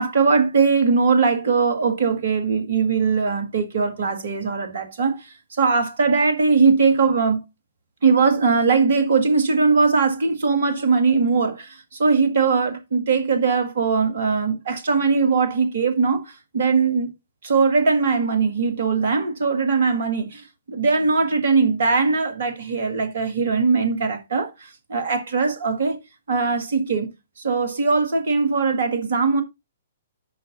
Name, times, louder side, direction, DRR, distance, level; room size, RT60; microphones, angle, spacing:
voice 1, 0.0-7.4 8.0-17.1 17.4-26.0 26.3-27.1 27.4-29.4, right 4 dB, 55° right, 1.9 m, -20 dB
10.5 x 5.9 x 2.7 m
figure-of-eight pair, 120°, 0 cm